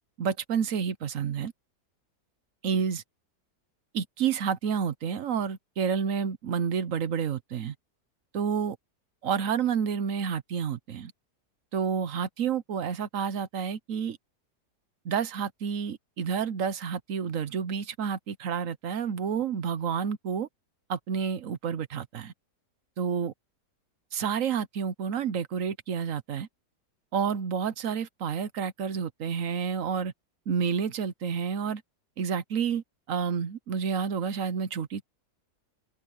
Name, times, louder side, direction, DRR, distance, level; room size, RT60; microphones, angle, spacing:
voice 1, 0.2-1.5 2.6-3.0 3.9-7.7 8.3-8.8 9.2-11.1 11.7-14.2 15.0-20.5 20.9-22.3 23.0-23.3 24.1-26.5 27.1-30.1 30.5-31.8 32.2-35.0, right 7 dB, 60° right, 1.1 m, -29 dB
omnidirectional pair, 1.8 m